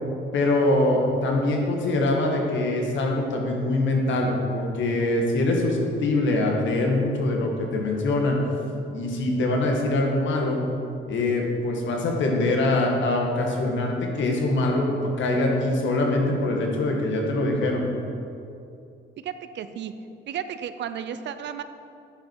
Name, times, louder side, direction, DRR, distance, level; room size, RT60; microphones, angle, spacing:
voice 1, 0.3-8.4 8.9-10.6 11.1-17.8, left 2 dB, 70° left, 1 dB, 1.5 m, -23 dB
voice 2, 19.2-19.9 20.3-21.6, right 9 dB, 65° right, 11 dB, 0.5 m, -33 dB
10.0 x 5.4 x 4.5 m, 2.6 s
cardioid pair, 90°, 20 cm